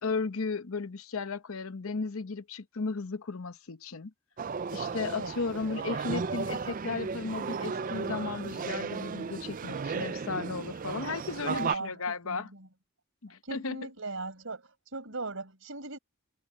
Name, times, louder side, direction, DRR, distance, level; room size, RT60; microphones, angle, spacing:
voice 1, 0.0-4.1 4.7-12.5 13.2-13.8, left 4 dB, 70° left, 0.9 m, -35 dB
sound 1, 4.4-11.8, right 5 dB, 40° right, 0.4 m, -35 dB
voice 2, 11.5-12.0 12.2-12.7 13.4-14.6 14.9-16.0, right 3 dB, 65° right, 5.3 m, -38 dB
head